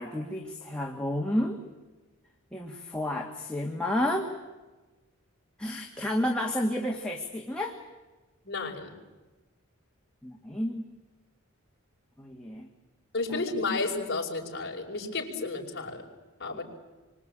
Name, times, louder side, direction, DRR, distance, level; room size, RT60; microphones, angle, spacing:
voice 1, 0.0-1.6 2.5-4.3 5.6-7.8 10.2-10.9 12.2-12.7 16.5-16.6, left 1 dB, 5° left, 0 dB, 1.9 m, -31 dB
voice 2, 8.4-9.0 13.1-16.0 16.4-16.6, left 3 dB, 50° left, -2 dB, 5.2 m, -32 dB
27.0 x 24.5 x 8.8 m, 1.2 s
head